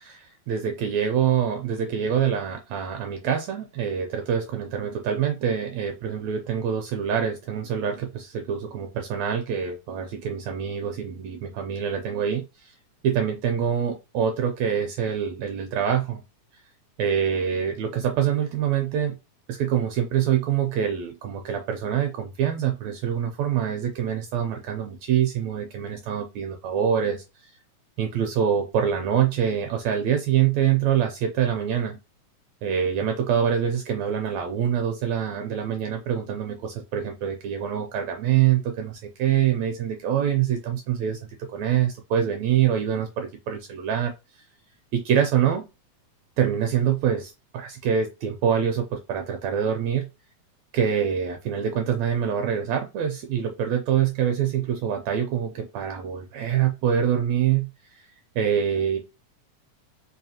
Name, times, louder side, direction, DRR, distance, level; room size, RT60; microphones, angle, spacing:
voice 1, 0.0-12.7 13.0-16.2 17.0-19.1 19.5-27.2 28.0-32.0 32.6-41.2 41.5-44.4 44.9-45.6 46.4-50.1 50.7-57.7 58.3-59.0, right 8 dB, 80° right, 4 dB, 1.6 m, -25 dB
4.7 x 2.7 x 2.8 m, 0.26 s
omnidirectional pair, 3.5 m